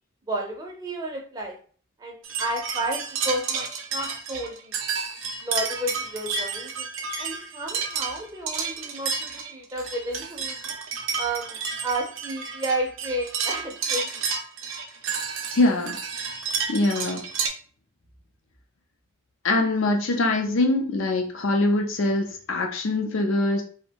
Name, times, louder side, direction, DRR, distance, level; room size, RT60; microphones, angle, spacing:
voice 1, 0.3-1.6 2.0-4.7 5.4-6.9 7.2-10.6 11.2-14.3, right 1 dB, 20° right, 0 dB, 0.5 m, -32 dB
sound 1, 2.2-17.5, right 5 dB, 70° right, 0.5 m, -31 dB
voice 2, 15.5-16.0 16.7-17.3 19.4-23.6, left 2 dB, 65° left, 2 dB, 0.5 m, -23 dB
2.6 x 2.1 x 2.8 m, 0.43 s
head